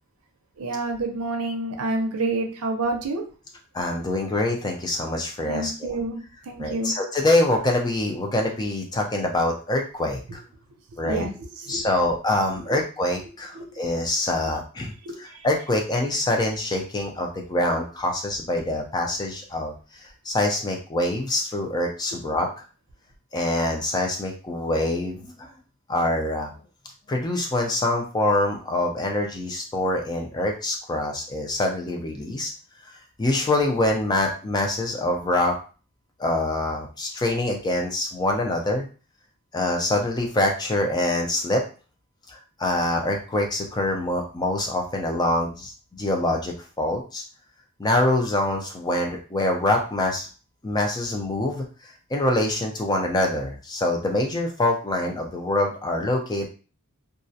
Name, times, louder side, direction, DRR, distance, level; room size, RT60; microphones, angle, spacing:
voice 1, 0.6-3.2 5.5-6.2 6.5-6.9 11.0-11.9 13.6-13.7 15.1-15.4, right 2 dB, 90° right, 4 dB, 0.5 m, -28 dB
voice 2, 3.7-6.0 6.6-10.4 11.0-11.3 11.7-14.9 15.2-19.7 20.0-22.5 23.3-25.5 25.9-26.5 27.1-32.5 33.2-35.6 36.2-38.8 39.5-41.7 42.3-47.2 47.8-50.3 50.6-56.5, left 1 dB, 20° left, 1 dB, 0.3 m, -25 dB
2.3 x 2.0 x 2.6 m, 0.36 s
head